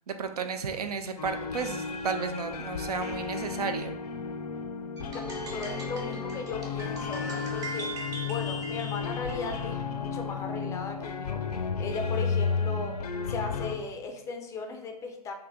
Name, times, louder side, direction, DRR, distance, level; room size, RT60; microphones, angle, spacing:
voice 1, 0.1-4.0, right 5 dB, 80° right, 8 dB, 0.5 m, -33 dB
sound 1, 1.2-13.8, left 5 dB, 80° left, 0.4 m, -33 dB
sound 2, 5.0-9.7, right 1 dB, 20° right, 0.8 m, -40 dB
voice 2, 5.5-13.0 13.3-15.3, left 4 dB, 15° left, 4 dB, 0.4 m, -37 dB
3.3 x 3.0 x 3.5 m, 0.77 s
hypercardioid pair, 120°, 20 cm